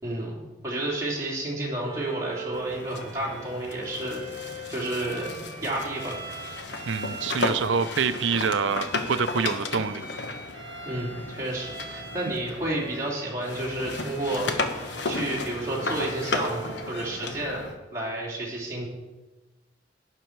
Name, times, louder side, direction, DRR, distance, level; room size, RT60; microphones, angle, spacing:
voice 1, 0.0-4.2 4.7-6.1 10.8-14.5 15.0-18.9, right 1 dB, 15° right, -5 dB, 3.1 m, -31 dB
Bowed string instrument, 1.7-17.0, right 3 dB, 35° right, 2.9 m, -42 dB
sound 1, 2.5-13.1 13.4-17.8, left 3 dB, 70° left, 1.1 m, -34 dB
voice 2, 6.9-10.0, right 5 dB, 90° right, 10 dB, 0.5 m, -26 dB
12.0 x 9.8 x 4.6 m, 1.1 s
head